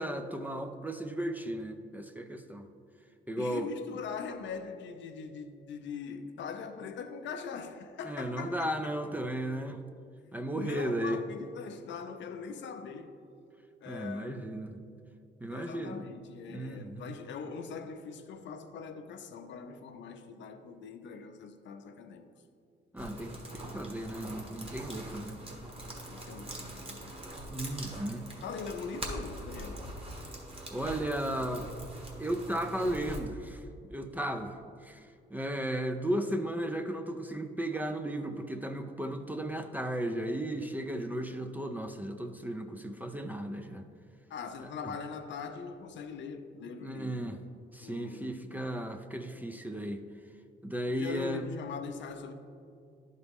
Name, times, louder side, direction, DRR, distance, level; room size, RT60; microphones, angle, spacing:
voice 1, 0.0-2.7 3.3-3.7 8.0-9.8 10.3-11.2 13.9-14.8 15.4-16.1 16.5-17.1 22.9-25.4 27.5-28.3 30.7-31.7 32.2-33.6 33.9-43.8 44.8-44.9 46.8-47.4 47.7-50.0 50.6-51.4, right 1 dB, 10° right, 0.4 m, -35 dB
voice 2, 3.4-8.9 10.5-13.2 13.8-14.4 15.5-22.3 26.1-27.2 27.8-28.0 28.4-29.9 44.3-47.4 47.8-48.4 50.9-52.3, left 5 dB, 65° left, 0.6 m, -42 dB
sound 1, 23.0-33.2, right 1 dB, 30° right, 1.3 m, -43 dB
11.0 x 4.0 x 3.5 m
cardioid pair, 90°, 20 cm